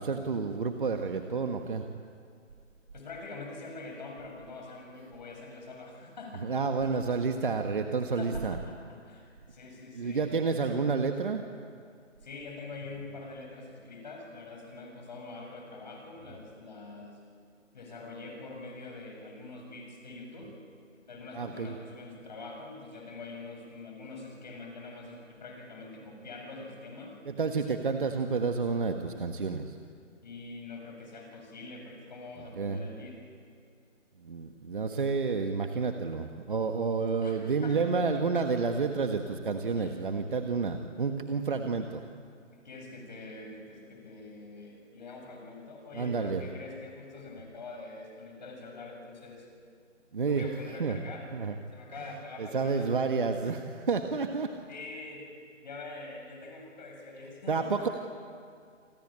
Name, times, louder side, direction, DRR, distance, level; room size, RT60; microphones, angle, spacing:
voice 1, 0.0-1.8 6.3-8.6 9.9-11.4 21.3-21.8 27.2-29.8 32.5-32.8 34.2-42.0 45.9-46.4 50.1-50.5 50.8-51.0 51.3-51.6 52.0-54.5 57.5-57.9, right 4 dB, 40° right, 5 dB, 1.4 m, -30 dB
voice 2, 2.9-6.5 6.8-7.0 8.2-10.3 12.2-17.2 17.7-20.5 21.1-27.2 30.2-33.2 37.0-37.9 39.8-39.9 42.5-49.5 50.3-51.3 51.7-52.9 54.7-55.3 55.6-57.9, left 3 dB, 35° left, 1 dB, 7.1 m, -44 dB
29.0 x 22.0 x 8.9 m, 2.2 s
figure-of-eight pair, 165°, 38 cm